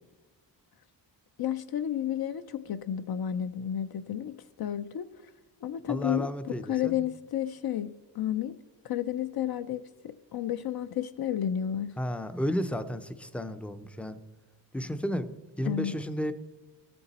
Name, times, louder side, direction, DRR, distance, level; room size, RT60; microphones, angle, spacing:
voice 1, 1.4-5.1 5.6-8.6 8.8-11.9 15.7-15.9, left 10 dB, 60° left, 0.5 m, -32 dB
voice 2, 5.9-6.9 12.0-14.2 14.7-15.3 15.6-16.3, equal, 5° left, 0.4 m, -32 dB
14.5 x 6.9 x 4.0 m
wide cardioid pair, 130°, 43 cm